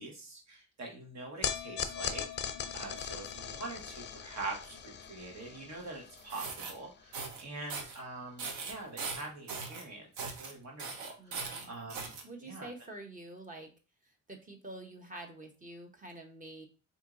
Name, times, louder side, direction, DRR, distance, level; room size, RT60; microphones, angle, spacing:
voice 1, 0.0-2.2 2.7-10.1 10.4-12.1 12.5-12.7, right 2 dB, 65° right, 0 dB, 1.4 m, -44 dB
sound 1, 1.4-7.8, left 8 dB, 35° left, 0.5 m, -40 dB
sound 2, 6.2-6.7 7.1-7.4 7.7-8.0 8.4-9.8 10.2-10.5 10.8-12.2, right 4 dB, 85° right, 0.8 m, -40 dB
voice 2, 11.2-11.7 12.2-13.7 14.3-16.7, right 2 dB, 25° right, 4 dB, 1.0 m, -47 dB
4.3 x 2.8 x 2.5 m, 0.33 s
cardioid pair, 90°, 30 cm